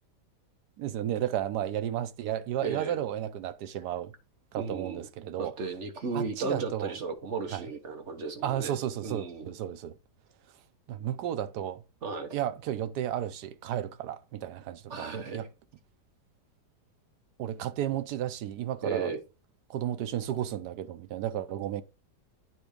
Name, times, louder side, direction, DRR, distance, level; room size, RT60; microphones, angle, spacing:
voice 1, 0.8-4.1 4.5-5.5 6.1-6.9 7.5-7.7 8.4-10.0 10.5-10.6 10.9-11.8 12.3-15.5 17.4-19.2 19.7-21.8, right 11 dB, 75° right, 1.2 m, -33 dB
voice 2, 2.6-3.0 4.6-5.0 5.4-8.7 9.0-9.5 12.0-12.3 14.9-15.5 18.8-19.2, right 4 dB, 45° right, 1.3 m, -35 dB
9.1 x 3.5 x 5.0 m
omnidirectional pair, 1.8 m